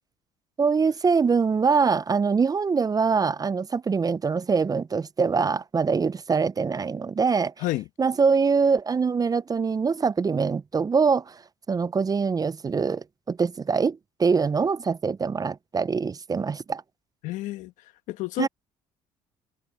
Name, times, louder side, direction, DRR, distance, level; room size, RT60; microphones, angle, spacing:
voice 1, 0.6-7.5 8.0-11.4 11.7-16.8 18.4-18.5, right 5 dB, 30° right, 0.6 m, -24 dB
voice 2, 17.2-17.7 18.1-18.5, left 17 dB, 75° left, 1.3 m, -29 dB
supercardioid pair, 70°, 13 cm